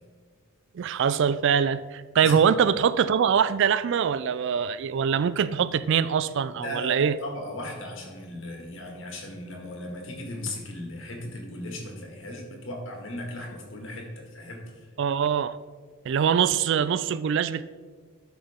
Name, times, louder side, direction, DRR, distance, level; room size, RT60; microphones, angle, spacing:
voice 1, 0.7-7.2 15.0-15.6 16.0-17.6, right 7 dB, 60° right, 15 dB, 0.3 m, -23 dB
voice 2, 6.6-14.9, left 1 dB, 65° left, 1 dB, 1.9 m, -37 dB
12.5 x 5.9 x 3.6 m, 1.5 s
head